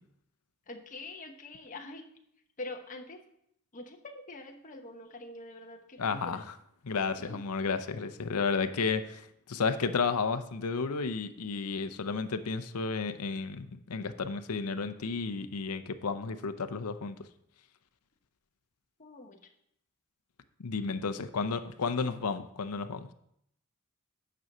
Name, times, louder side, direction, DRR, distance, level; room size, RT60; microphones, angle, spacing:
voice 1, 0.7-2.0 2.6-3.2 3.7-6.4 7.2-7.4 19.0-19.5, left 2 dB, 35° left, 3 dB, 1.0 m, -45 dB
voice 2, 6.0-6.5 6.8-17.2 20.6-23.1, left 4 dB, 80° left, 10 dB, 0.7 m, -32 dB
9.2 x 6.2 x 5.4 m, 0.74 s
head